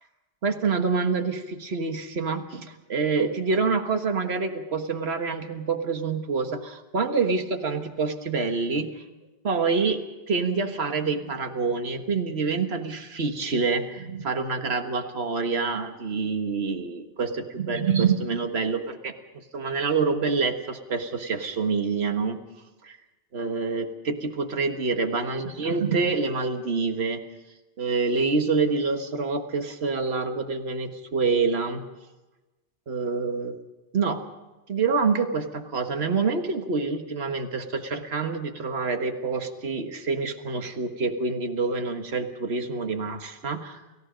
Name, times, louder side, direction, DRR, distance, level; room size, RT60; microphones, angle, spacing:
voice 1, 0.4-9.0 9.4-22.4 22.8-23.0 23.3-27.2 27.8-31.8 32.9-33.6 33.9-34.2 34.7-43.8, right 4 dB, 75° right, 5 dB, 1.8 m, -27 dB
29.5 x 17.0 x 5.2 m, 1.1 s
omnidirectional pair, 1.1 m